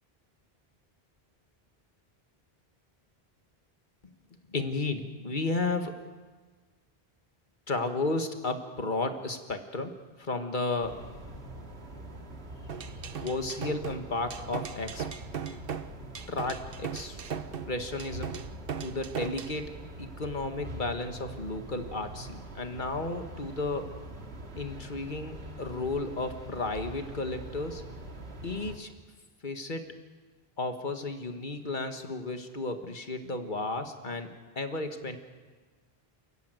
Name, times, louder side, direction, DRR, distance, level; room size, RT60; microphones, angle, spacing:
voice 1, 4.5-6.0 7.7-11.0 12.9-15.1 16.3-17.2 17.7-18.3 18.8-23.9 24.5-27.8 28.4-28.9 29.4-29.9 30.6-35.2, left 2 dB, 50° left, 7 dB, 1.8 m, -33 dB
sound 1, 10.8-28.8, right 1 dB, 85° right, 2.4 m, -44 dB
sound 2, 12.7-19.6, right 7 dB, 65° right, 1.1 m, -38 dB
28.5 x 14.5 x 9.2 m, 1.4 s
omnidirectional pair, 1.1 m